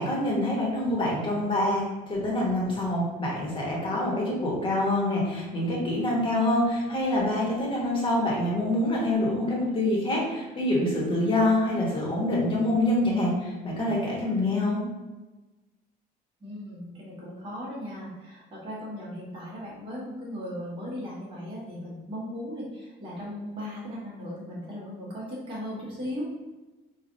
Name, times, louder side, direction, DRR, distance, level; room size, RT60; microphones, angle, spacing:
voice 1, 0.0-14.8, left 1 dB, 25° left, -4 dB, 1.1 m, -26 dB
voice 2, 16.4-26.2, equal, 25° right, -7 dB, 1.3 m, -37 dB
4.6 x 2.3 x 2.6 m, 1.1 s
cardioid pair, 145°, 19 cm